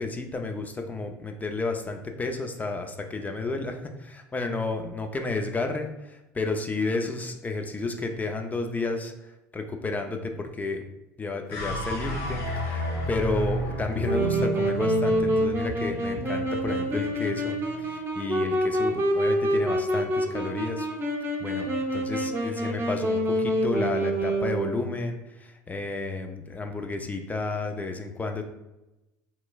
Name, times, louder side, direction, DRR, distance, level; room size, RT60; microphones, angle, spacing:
voice 1, 0.0-10.8 11.2-20.9 21.4-28.5, left 3 dB, 20° left, 5 dB, 0.4 m, -32 dB
sound 1, 11.5-17.9, right 1 dB, 70° left, 0.8 m, -32 dB
Wind instrument woodwind instrument, 14.0-24.9, equal, 30° right, 0.7 m, -27 dB
3.4 x 2.9 x 2.3 m, 0.96 s
hypercardioid pair, 80°, 9 cm